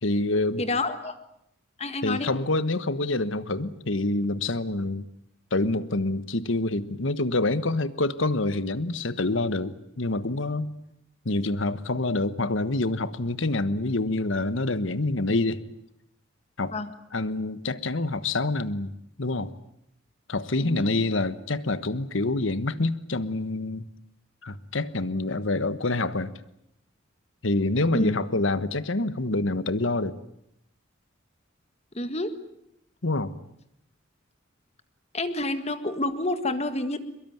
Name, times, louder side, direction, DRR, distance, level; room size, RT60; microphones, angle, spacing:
voice 1, 0.0-0.7 2.0-5.0 5.5-10.7 11.2-15.6 16.6-16.7 17.1-18.9 19.2-19.5 20.3-23.8 24.4-26.3 27.4-30.2 33.0-33.3, left 2 dB, 70° left, 15 dB, 1.3 m, -26 dB
voice 2, 0.6-1.1 1.8-2.3 16.7-16.9 20.6-20.9 27.9-28.1 31.9-32.3 35.1-37.0, left 2 dB, 30° left, 11 dB, 1.7 m, -28 dB
23.5 x 22.0 x 9.4 m, 0.78 s
head